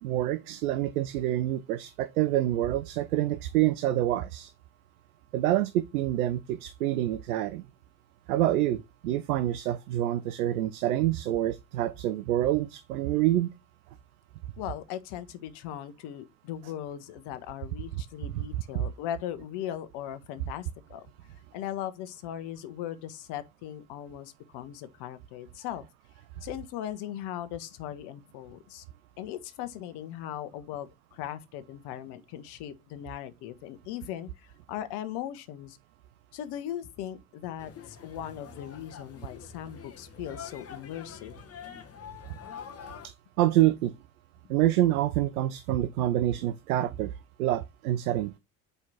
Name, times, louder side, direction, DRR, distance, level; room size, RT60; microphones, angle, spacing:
voice 1, 0.0-4.5 5.3-7.6 8.3-13.5 43.0-43.9 44.5-47.1 47.4-48.3, right 13 dB, 85° right, 0.6 m, -27 dB
voice 2, 14.6-25.9 26.4-28.8 29.2-35.8 36.3-41.5, left 11 dB, 65° left, 1.1 m, -39 dB
sound 1, 37.6-43.1, left 6 dB, 35° left, 1.1 m, -46 dB
5.6 x 4.5 x 4.0 m
hypercardioid pair, 65°, 43 cm